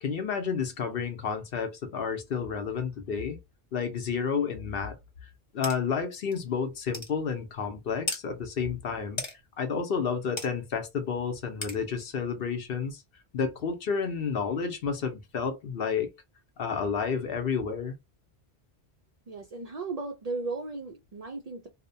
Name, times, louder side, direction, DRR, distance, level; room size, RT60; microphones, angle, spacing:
voice 1, 0.0-3.4 3.7-5.0 5.2-9.2 9.6-13.0 13.3-16.1 16.6-18.0, left 6 dB, 65° left, 0.9 m, -31 dB
sound 1, 5.6-5.8 6.3-6.4 6.9-7.1 8.1-8.2 9.2-9.3 10.4-10.5 11.6-11.8, left 2 dB, 30° left, 0.7 m, -34 dB
voice 2, 19.3-21.7, right 3 dB, 55° right, 0.4 m, -36 dB
2.8 x 2.1 x 2.6 m
omnidirectional pair, 1.1 m